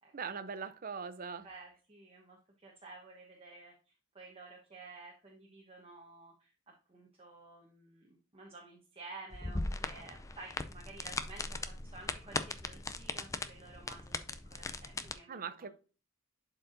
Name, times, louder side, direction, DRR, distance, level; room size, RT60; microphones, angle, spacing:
voice 1, 0.1-1.5 15.3-15.7, right 6 dB, 40° right, 0.5 m, -41 dB
voice 2, 1.4-3.7 4.1-15.7, right 3 dB, 25° right, 1.1 m, -53 dB
sound 1, 9.3-15.1, left 3 dB, 15° left, 0.4 m, -39 dB
11.0 x 4.6 x 2.6 m
head